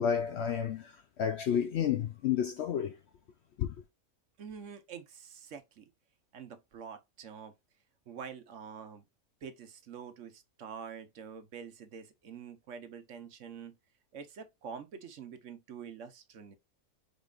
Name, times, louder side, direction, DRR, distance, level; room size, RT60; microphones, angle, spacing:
voice 1, 0.0-3.0 3.6-3.7, left 8 dB, 65° left, 0.7 m, -31 dB
voice 2, 4.4-5.9 6.3-7.5 8.1-9.0 9.4-13.8 14.1-16.5, right 7 dB, 60° right, 1.1 m, -46 dB
5.4 x 4.1 x 2.4 m
omnidirectional pair, 1.5 m